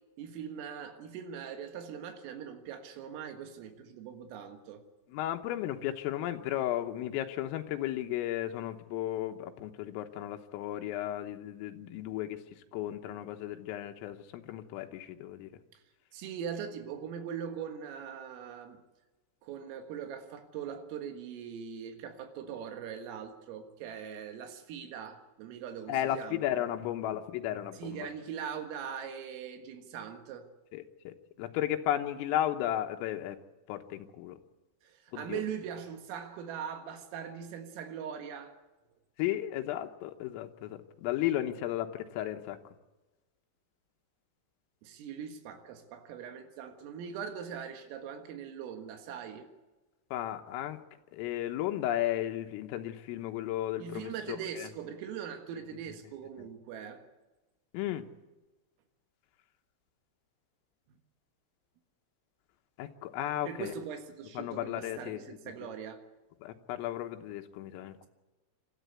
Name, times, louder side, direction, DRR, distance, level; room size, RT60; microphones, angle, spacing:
voice 1, 0.2-4.9 15.7-15.8 16.1-18.8 19.4-26.7 27.7-30.5 34.8-38.6 44.8-49.5 53.8-57.0 63.5-66.0, right 8 dB, 85° right, 4.3 m, -41 dB
voice 2, 5.1-15.5 25.9-28.1 30.7-33.4 33.7-34.4 35.1-35.4 39.2-42.6 50.1-50.8 51.1-54.7 56.4-56.5 57.7-58.1 62.8-63.7 64.4-65.4 66.4-68.1, left 12 dB, 90° left, 3.8 m, -34 dB
27.5 x 13.5 x 8.2 m
omnidirectional pair, 5.8 m